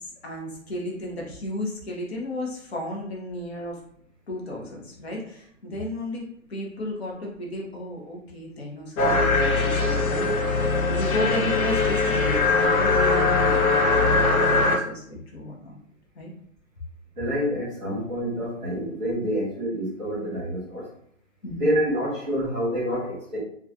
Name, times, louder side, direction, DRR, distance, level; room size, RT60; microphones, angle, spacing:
voice 1, 0.0-3.8 4.3-10.6 10.9-15.8 16.1-16.3 21.4-21.7, left 1 dB, 50° left, -2 dB, 0.9 m, -33 dB
sound 1, 9.0-14.8, left 3 dB, 90° left, 0.7 m, -21 dB
voice 2, 17.1-20.9 21.6-23.4, equal, 10° right, -10 dB, 1.1 m, -27 dB
2.9 x 2.3 x 2.4 m, 0.66 s
hypercardioid pair, 180°, 41 cm